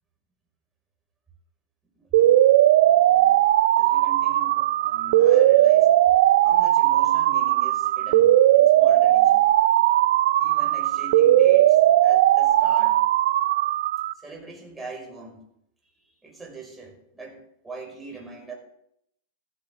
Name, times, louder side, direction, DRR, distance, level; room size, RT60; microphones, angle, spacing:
voice 1, 1.9-2.5 2.9-5.9 6.4-9.4 10.4-13.0 14.1-15.4 16.2-18.5, right 3 dB, 10° right, 0 dB, 5.2 m, -42 dB
sound 1, 2.1-14.1, right 13 dB, 60° right, 0.5 m, -18 dB
16.0 x 12.0 x 3.6 m, 0.73 s
hypercardioid pair, 95°, 0 cm